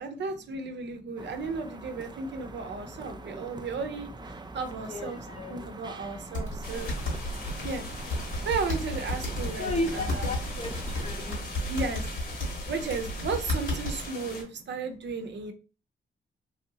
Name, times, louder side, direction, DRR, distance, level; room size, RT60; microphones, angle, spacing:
voice 1, 0.0-5.2 5.5-6.9 7.6-7.8 8.4-10.3 11.7-12.1 12.7-15.5, right 4 dB, 60° right, 6 dB, 0.6 m, -34 dB
voice 2, 0.5-1.5 1.8-1.9 2.5-3.7 4.3-4.4 4.7-7.6 8.1-8.5 9.6-11.7, left 2 dB, 30° left, 5 dB, 0.7 m, -38 dB
sound 1, 1.2-11.4, right 3 dB, 20° right, 0.4 m, -44 dB
sound 2, 6.3-14.1, left 1 dB, 75° left, 1.8 m, -33 dB
sound 3, 6.6-14.4, left 2 dB, 50° left, 1.1 m, -41 dB
3.1 x 2.8 x 2.7 m, 0.34 s
supercardioid pair, 55°, 21 cm